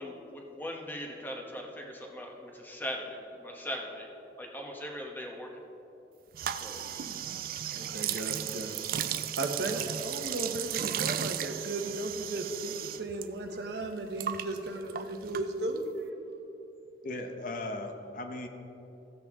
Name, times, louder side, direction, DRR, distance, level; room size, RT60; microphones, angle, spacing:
voice 1, 0.0-4.1 4.4-5.5 6.6-6.9 9.6-9.8, left 1 dB, 10° left, 1 dB, 1.1 m, -40 dB
sound 1, 6.3-13.3 13.5-15.9, right 10 dB, 50° right, 0.4 m, -35 dB
voice 2, 7.7-8.8 9.4-16.1, right 2 dB, 70° right, 4 dB, 1.0 m, -35 dB
voice 3, 17.0-18.5, left 2 dB, 45° left, 5 dB, 0.8 m, -37 dB
15.0 x 8.0 x 3.6 m, 2.9 s
head